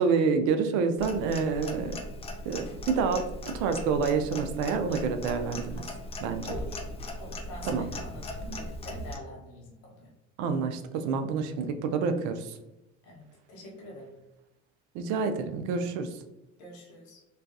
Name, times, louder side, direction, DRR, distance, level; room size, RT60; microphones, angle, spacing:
voice 1, 0.0-2.0 2.5-5.8 6.2-6.5 7.6-7.9 10.4-12.6 14.9-16.1, right 5 dB, 60° right, 8 dB, 0.4 m, -28 dB
Clock, 1.0-9.2, left 1 dB, 20° left, 0.4 m, -39 dB
voice 2, 6.5-6.8 7.2-10.1 13.0-14.1 16.6-17.2, left 1 dB, 65° left, -3 dB, 0.9 m, -44 dB
2.3 x 2.2 x 2.5 m, 0.94 s
hypercardioid pair, 75°, 33 cm